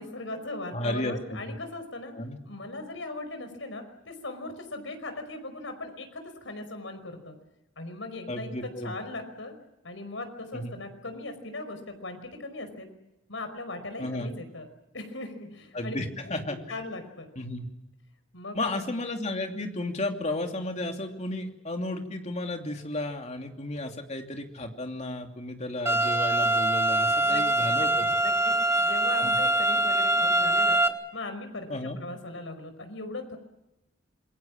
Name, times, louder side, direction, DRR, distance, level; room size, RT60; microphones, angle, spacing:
voice 1, 0.0-2.1 2.4-7.4 7.8-9.5 9.8-12.9 13.3-14.7 14.9-16.0 16.5-17.3 18.3-18.8 27.2-27.4 27.8-30.8 31.1-33.4, left 2 dB, 80° left, 8 dB, 5.1 m, -39 dB
voice 2, 0.7-1.2 2.1-2.4 8.3-8.9 10.5-10.8 14.0-14.3 15.7-16.6 17.4-17.7 18.5-28.1 29.2-29.3 31.7-32.0, left 1 dB, 35° left, 4 dB, 2.8 m, -33 dB
sound 1, 25.9-30.9, right 1 dB, 15° right, 1.6 m, -24 dB
27.0 x 22.5 x 7.5 m, 0.92 s
head